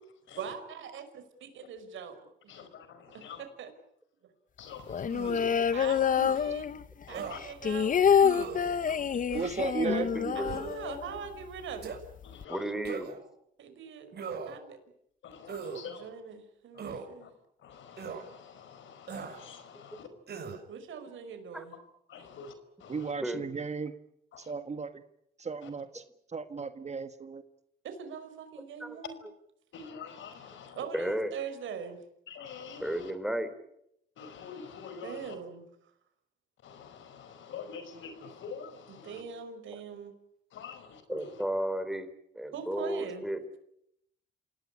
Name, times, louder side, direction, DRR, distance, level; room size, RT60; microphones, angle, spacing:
voice 1, 0.4-2.5 3.1-3.2 3.6-3.7 5.7-6.7 7.1-7.9 9.8-12.0 13.6-14.8 16.0-17.3 20.7-21.7 27.8-29.2 30.8-32.0 35.0-35.7 39.0-40.1 42.5-43.3, right 7 dB, 75° right, 8 dB, 5.4 m, -42 dB
voice 2, 2.5-3.4 4.6-5.4 7.1-7.4 8.9-9.6 12.2-12.7 15.2-16.1 16.7-16.9 17.2-17.3 17.6-20.1 22.1-23.1 24.3-24.5 25.6-25.7 29.7-31.0 32.3-33.1 34.2-35.4 36.6-39.2 40.5-41.4, left 6 dB, 75° left, 11 dB, 5.2 m, -46 dB
sound 1, 4.9-7.0 7.3-11.3 11.6-11.7 11.9-12.4, left 7 dB, 40° left, 1.0 m, -27 dB
sound 2, 5.1-5.6 6.2-6.4 7.1-7.4 8.2-8.6 9.3-9.7 10.4-10.8 11.8-12.0 12.8-13.2 14.1-14.6 15.5-15.8 16.8-17.1 18.0-18.2 19.1-19.4 20.3-20.6, right 6 dB, 55° right, 6.4 m, -39 dB
voice 3, 9.3-10.1 22.9-23.9 24.4-24.9 25.4-26.0 26.3-27.4, right 5 dB, 35° right, 9 dB, 1.6 m, -35 dB
voice 4, 9.9-10.6 12.5-13.2 21.5-21.6 23.2-23.5 28.8-29.0 30.9-31.3 32.8-33.5 41.1-42.1 42.3-43.4, right 1 dB, ahead, 9 dB, 4.2 m, -33 dB
28.0 x 18.0 x 9.8 m, 0.77 s
cardioid pair, 90°, 20 cm